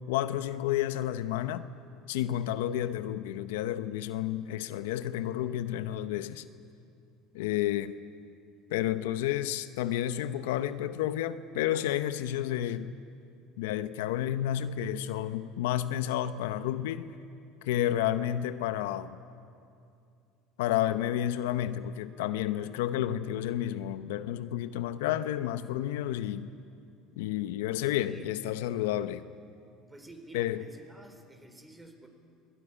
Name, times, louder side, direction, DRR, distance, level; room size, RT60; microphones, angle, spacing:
voice 1, 0.1-1.7 2.1-6.4 7.3-8.0 8.7-12.9 13.6-17.1 17.6-19.2 20.6-26.5 27.2-29.2 30.3-30.6, left 12 dB, 90° left, 0.8 m, -31 dB
voice 2, 27.7-28.4 29.9-32.1, right 2 dB, 10° right, 3.9 m, -51 dB
24.5 x 18.5 x 9.9 m
supercardioid pair, 105°, 0 cm